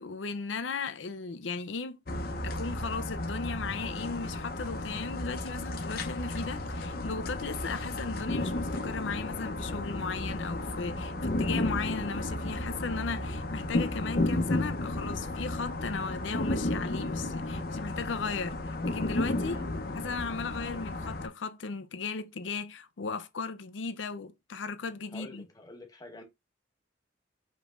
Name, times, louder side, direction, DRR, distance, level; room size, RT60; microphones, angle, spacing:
voice 1, 0.0-2.0 2.4-19.6 19.9-25.4, left 4 dB, 85° left, 0.6 m, -36 dB
sound 1, 2.1-21.3, left 1 dB, 55° left, 0.8 m, -33 dB
voice 2, 25.1-26.2, left 1 dB, 20° left, 1.0 m, -47 dB
5.1 x 3.2 x 2.5 m
head